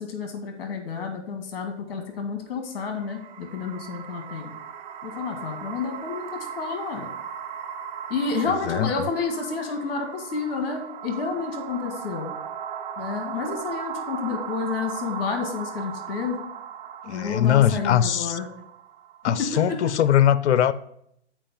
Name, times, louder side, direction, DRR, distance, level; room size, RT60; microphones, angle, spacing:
voice 1, 0.0-4.5 5.0-7.1 8.1-12.3 13.0-16.4 17.1-18.5 19.3-19.8, left 5 dB, 55° left, 1.9 m, -30 dB
sound 1, 2.7-19.8, right 8 dB, 40° right, 0.7 m, -37 dB
voice 2, 17.0-18.4 19.2-20.7, left 10 dB, 75° left, 0.6 m, -21 dB
7.5 x 4.6 x 5.2 m
hypercardioid pair, 140°, 35 cm